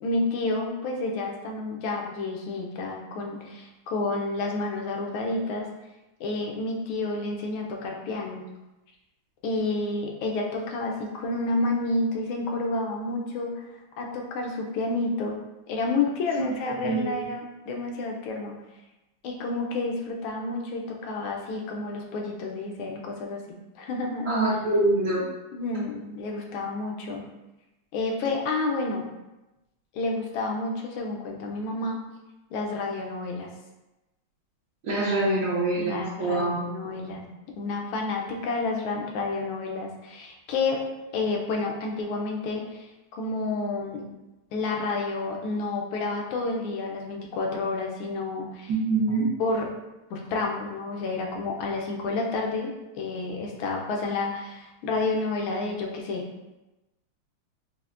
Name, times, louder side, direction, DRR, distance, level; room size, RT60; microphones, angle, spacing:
voice 1, 0.0-5.7 6.2-8.5 9.4-13.6 14.0-15.4 15.7-18.5 19.2-23.4 23.8-24.3 25.5-27.2 27.9-29.1 29.9-32.0 32.5-33.5 35.8-37.2 37.6-40.8 41.1-42.9 43.2-44.0 44.5-48.7 49.4-49.7 50.1-56.3, left 3 dB, 80° left, 1 dB, 1.4 m, -30 dB
voice 2, 16.8-17.1 24.2-25.2 34.8-37.2 48.7-49.3, right 2 dB, 65° right, -10 dB, 1.4 m, -25 dB
5.5 x 2.1 x 2.4 m, 1.0 s
omnidirectional pair, 2.3 m